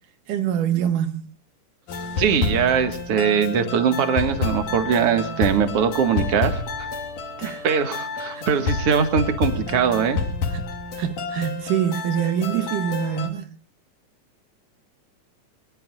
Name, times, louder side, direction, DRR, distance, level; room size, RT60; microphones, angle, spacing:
voice 1, 0.3-1.3 7.4-7.7 8.3-8.5 10.5-10.6 11.0-13.5, right 10 dB, 80° right, 2.7 m, -25 dB
sound 1, 1.9-13.3, left 4 dB, 70° left, 4.1 m, -29 dB
voice 2, 2.2-6.6 7.6-10.2, right 7 dB, 50° right, 2.6 m, -21 dB
26.0 x 21.0 x 2.5 m
omnidirectional pair, 3.7 m